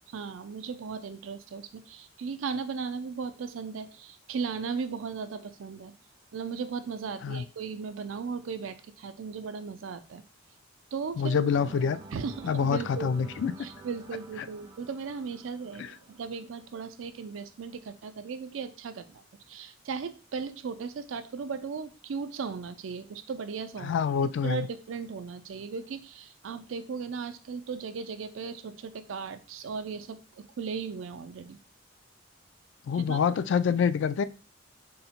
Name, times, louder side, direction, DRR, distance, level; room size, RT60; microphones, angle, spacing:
voice 1, 0.1-5.9 6.3-10.2 10.9-11.5 12.1-13.3 13.6-24.0 24.2-31.6 32.9-33.4, right 5 dB, 85° right, 11 dB, 0.4 m, -37 dB
voice 2, 11.2-12.0 12.4-13.5 15.8-15.9 23.8-24.7 32.9-34.2, left 6 dB, 65° left, 13 dB, 0.3 m, -26 dB
sound 1, 11.5-17.4, right 2 dB, 20° right, 0.4 m, -49 dB
3.8 x 2.1 x 4.2 m, 0.33 s
head